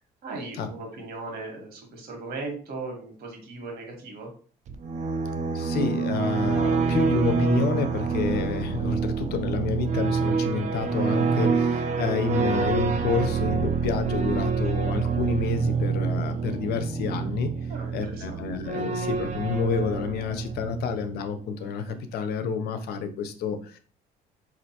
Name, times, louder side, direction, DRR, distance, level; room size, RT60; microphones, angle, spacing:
voice 1, 0.2-4.3 17.7-18.6, right 3 dB, 65° right, 2 dB, 1.4 m, -38 dB
sound 1, 4.7-21.3, right 5 dB, 45° right, 0.4 m, -27 dB
voice 2, 5.5-17.5 17.9-23.8, left 5 dB, 70° left, 9 dB, 0.6 m, -29 dB
4.2 x 2.6 x 2.8 m, 0.43 s
cardioid pair, 110°, 17 cm